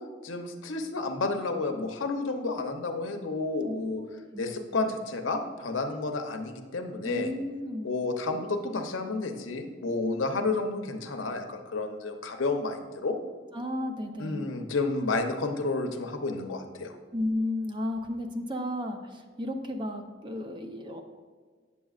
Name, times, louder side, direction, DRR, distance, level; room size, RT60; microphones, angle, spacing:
voice 1, 0.2-4.0 4.4-7.3 7.8-13.2 14.2-17.0, left 3 dB, 85° left, 5 dB, 0.7 m, -31 dB
voice 2, 7.0-7.9 13.5-14.4 17.1-21.0, left 1 dB, 25° right, 4 dB, 0.6 m, -33 dB
8.4 x 7.2 x 2.4 m, 1.5 s
head